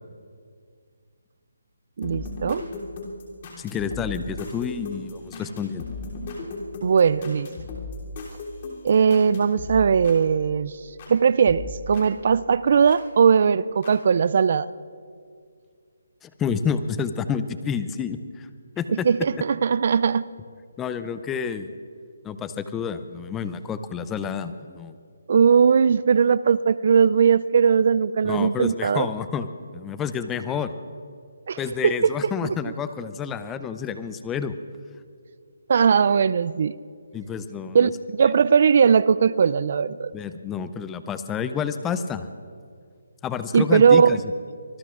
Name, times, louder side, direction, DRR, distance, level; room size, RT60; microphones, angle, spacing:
sound 1, 2.0-11.2 11.5-13.0 13.8-13.9, left 2 dB, 35° left, 3.2 m, -37 dB
voice 1, 2.0-2.6 6.8-7.5 8.8-10.7 11.1-14.7 19.0-20.3 25.3-29.1 31.5-31.9 35.7-36.8 37.7-40.1 43.5-44.2, right 6 dB, 50° right, 18 dB, 0.4 m, -19 dB
voice 2, 3.6-5.8 16.2-18.5 18.8-19.1 20.8-21.7 22.2-25.0 28.2-29.5 29.7-30.7 31.6-34.6 37.1-37.9 40.1-42.3 43.2-44.2, left 7 dB, 10° left, 11 dB, 0.5 m, -29 dB
25.0 x 19.5 x 2.5 m, 2.2 s
hypercardioid pair, 160°, 0 cm